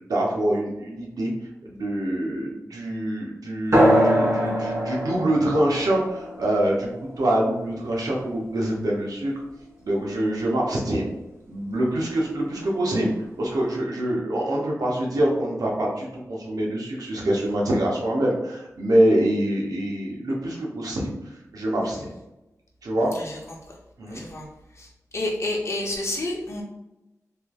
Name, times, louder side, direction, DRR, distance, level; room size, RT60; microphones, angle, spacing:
voice 1, 0.1-1.3 1.6-6.9 7.2-9.3 9.8-11.0 11.5-13.1 13.4-21.2 21.5-22.0 22.8-23.1 24.0-24.2, right 1 dB, 85° right, -3 dB, 0.7 m, -25 dB
sound 1, 3.7-8.8, equal, 50° right, 1.2 m, -24 dB
voice 2, 24.1-24.5 24.8-24.9 25.1-26.6, left 1 dB, 50° left, -1 dB, 0.7 m, -29 dB
3.2 x 2.9 x 2.3 m, 0.96 s
cardioid pair, 55°, 6 cm